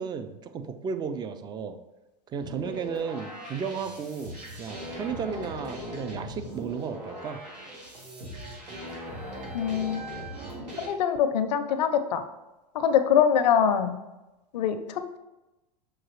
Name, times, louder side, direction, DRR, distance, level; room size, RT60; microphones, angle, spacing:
voice 1, 0.0-1.8 2.3-7.4, right 6 dB, 20° right, 9 dB, 0.3 m, -34 dB
sound 1, 2.4-10.9, equal, 85° right, 1.2 m, -39 dB
voice 2, 9.5-10.0 10.8-12.2 12.7-14.0 14.5-15.2, left 8 dB, 80° left, 10 dB, 0.5 m, -24 dB
5.9 x 2.4 x 3.1 m, 0.99 s
hypercardioid pair, 100°, 21 cm